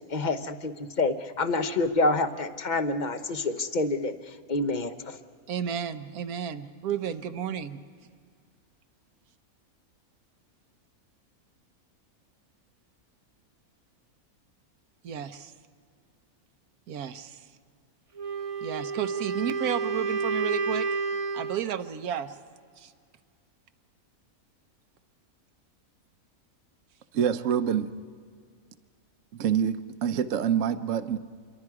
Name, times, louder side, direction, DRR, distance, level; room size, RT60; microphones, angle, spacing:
voice 1, 0.1-4.1 4.5-5.2, left 3 dB, 35° left, 9 dB, 0.9 m, -27 dB
voice 2, 5.5-7.8 15.0-15.5 16.9-17.4 18.6-20.9 21.3-22.4 22.8-22.9, right 9 dB, 85° right, 11 dB, 1.4 m, -32 dB
Wind instrument woodwind instrument, 18.2-21.7, right 4 dB, 35° right, 0.6 m, -30 dB
voice 3, 27.1-27.9 29.3-31.2, right 8 dB, 65° right, 11 dB, 1.1 m, -26 dB
27.0 x 23.0 x 4.8 m, 2.1 s
omnidirectional pair, 1.5 m